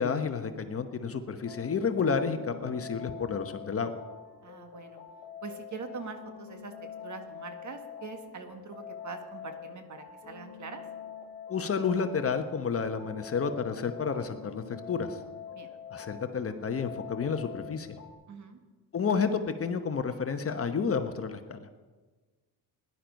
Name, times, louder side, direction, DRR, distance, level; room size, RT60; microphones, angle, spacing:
voice 1, 0.0-4.0 11.5-15.2 15.9-18.0 18.9-21.7, left 5 dB, 35° left, 8 dB, 1.0 m, -30 dB
sound 1, 1.5-18.1, left 8 dB, 90° left, 1.4 m, -45 dB
voice 2, 4.4-5.0 5.4-6.7 7.0-10.8 15.5-15.7 18.3-18.6, right 5 dB, 45° right, 6 dB, 1.6 m, -43 dB
17.0 x 11.0 x 5.2 m, 1.3 s
cardioid pair, 120°, 39 cm